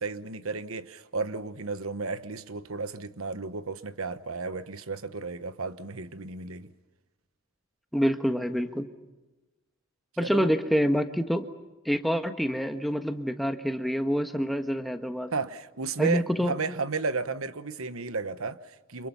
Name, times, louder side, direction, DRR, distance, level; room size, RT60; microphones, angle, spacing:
voice 1, 0.0-6.7 10.2-10.5 15.3-19.1, right 4 dB, 90° right, 1.2 m, -33 dB
voice 2, 7.9-8.9 10.2-11.4 11.8-15.3 16.0-16.5, equal, ahead, 1.4 m, -27 dB
30.0 x 27.5 x 5.6 m
head